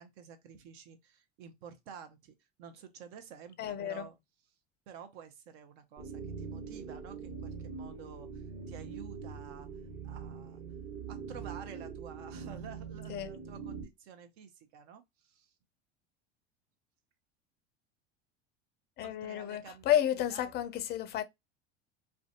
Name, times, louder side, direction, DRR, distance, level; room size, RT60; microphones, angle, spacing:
voice 1, 0.0-2.3 2.6-4.2 4.9-9.7 10.0-10.6 11.1-15.5 19.0-19.9 20.2-20.5, right 7 dB, 65° right, 0.7 m, -50 dB
voice 2, 3.6-4.1 13.1-13.3 19.0-21.2, left 11 dB, 30° left, 0.4 m, -31 dB
sound 1, 6.0-13.9, right 5 dB, 45° right, 1.1 m, -43 dB
2.5 x 2.2 x 2.5 m
hypercardioid pair, 80°, 33 cm